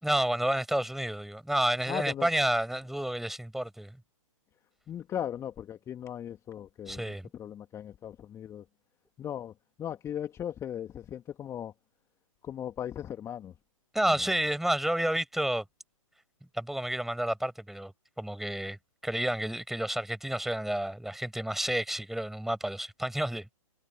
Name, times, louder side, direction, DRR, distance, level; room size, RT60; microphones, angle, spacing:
voice 1, 0.0-4.0 6.9-7.3 13.9-15.6 16.5-17.9 18.2-18.8 19.0-23.5, right 1 dB, ahead, 5.4 m, -30 dB
voice 2, 1.9-2.3 4.9-8.7 9.2-9.5 9.8-11.7 12.4-13.5 14.1-14.3, left 10 dB, 15° left, 2.1 m, -38 dB
figure-of-eight pair, 125°, 18 cm